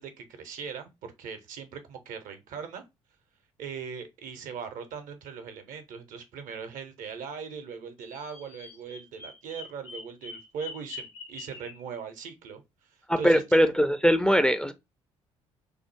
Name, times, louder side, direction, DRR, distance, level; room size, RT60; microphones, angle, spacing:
voice 1, 0.0-2.8 3.6-12.6 13.2-13.6, right 6 dB, 55° right, 0.6 m, -40 dB
Bird vocalization bird call bird song, 8.0-11.8, left 4 dB, 80° left, 0.7 m, -44 dB
voice 2, 13.1-14.7, equal, 5° left, 0.4 m, -21 dB
3.3 x 2.0 x 3.1 m
figure-of-eight pair, 45°, 16 cm